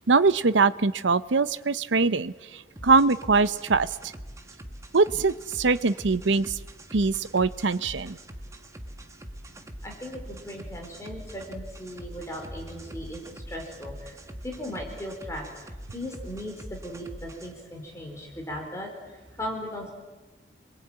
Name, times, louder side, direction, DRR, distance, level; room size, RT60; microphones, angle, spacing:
voice 1, 0.1-4.1 4.9-6.6 6.9-8.2, right 4 dB, 90° right, 15 dB, 0.8 m, -23 dB
sound 1, 2.8-17.5, equal, 15° right, 1.4 m, -43 dB
voice 2, 9.8-15.4 15.9-18.9 19.3-19.9, equal, 15° left, 1 dB, 4.4 m, -37 dB
27.5 x 22.5 x 9.0 m, 1.2 s
head